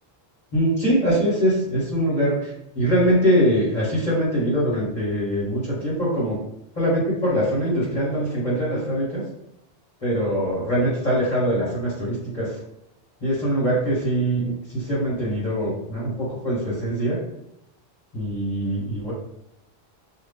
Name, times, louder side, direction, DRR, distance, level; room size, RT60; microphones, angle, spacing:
voice 1, 0.5-6.4 6.7-9.2 10.0-12.6 13.2-17.2 18.1-19.1, equal, 40° left, -8 dB, 1.5 m, -23 dB
2.7 x 2.6 x 3.6 m, 0.82 s
omnidirectional pair, 1.1 m